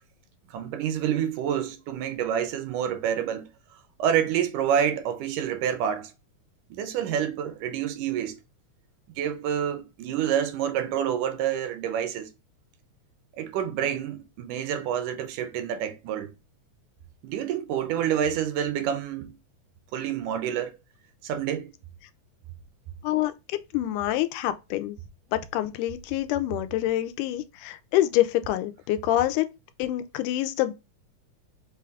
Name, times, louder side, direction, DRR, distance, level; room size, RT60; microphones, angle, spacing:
voice 1, 0.5-3.5 4.0-6.1 6.7-8.4 9.1-12.3 13.4-16.3 17.2-19.3 19.9-20.7 21.2-21.7, right 9 dB, 85° right, 2.3 m, -28 dB
voice 2, 23.7-25.0 25.3-29.5 29.8-30.7, left 14 dB, 90° left, 2.1 m, -26 dB
5.7 x 2.3 x 3.4 m
omnidirectional pair, 3.5 m